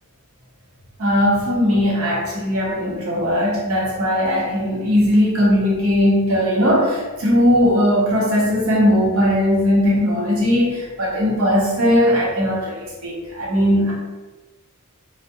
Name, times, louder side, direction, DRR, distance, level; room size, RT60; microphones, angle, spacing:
voice 1, 1.0-13.9, equal, 80° right, -5 dB, 0.8 m, -18 dB
2.3 x 2.1 x 2.6 m, 1.2 s
head